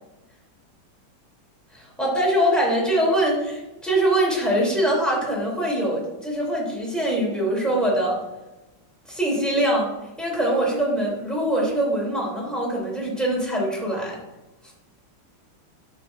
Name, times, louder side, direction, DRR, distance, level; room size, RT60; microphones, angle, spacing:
voice 1, 1.7-8.2 9.1-9.9 10.2-14.2, right 1 dB, ahead, -3 dB, 2.9 m, -23 dB
11.0 x 7.1 x 2.6 m, 1.0 s
omnidirectional pair, 2.1 m